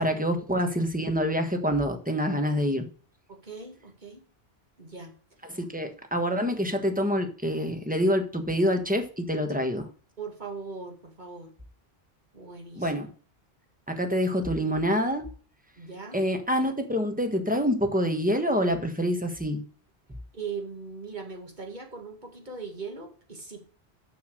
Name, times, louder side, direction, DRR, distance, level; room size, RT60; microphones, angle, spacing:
voice 1, 0.0-2.9 5.5-9.9 12.8-13.1 13.9-15.3 16.1-19.6, equal, 10° right, 5 dB, 1.3 m, -26 dB
voice 2, 3.3-4.2 4.8-5.1 9.5-9.6 10.2-11.5 12.3-13.0 15.8-16.3 20.3-23.6, right 5 dB, 45° right, 2 dB, 2.3 m, -40 dB
6.9 x 6.5 x 6.4 m, 0.41 s
omnidirectional pair, 1.1 m